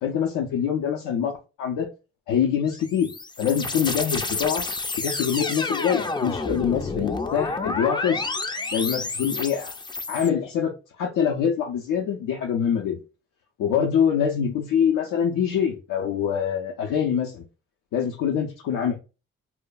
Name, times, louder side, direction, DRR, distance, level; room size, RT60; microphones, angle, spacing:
voice 1, 0.0-1.9 2.3-3.1 3.4-4.6 5.0-8.3 8.7-9.7 10.1-13.0 13.6-17.4 17.9-19.0, left 8 dB, 75° left, 0.6 m, -24 dB
sound 1, 2.7-10.3, left 3 dB, 15° left, 0.4 m, -30 dB
2.2 x 2.0 x 3.8 m
supercardioid pair, 55°, 31 cm